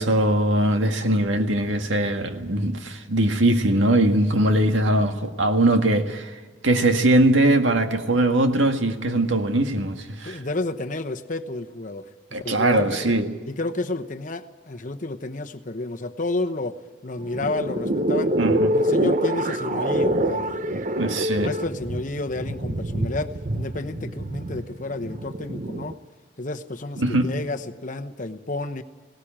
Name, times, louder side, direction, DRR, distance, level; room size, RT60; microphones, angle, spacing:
voice 1, 0.0-10.4 12.3-13.3 18.4-18.7 21.0-21.5 27.0-27.3, right 1 dB, 85° right, 1.8 m, -21 dB
voice 2, 10.2-13.2 13.5-18.4 18.7-20.7 21.4-25.9 26.4-28.8, left 2 dB, 45° left, 1.0 m, -31 dB
sound 1, 17.2-25.9, right 1 dB, 40° right, 0.8 m, -25 dB
18.5 x 18.0 x 8.9 m
head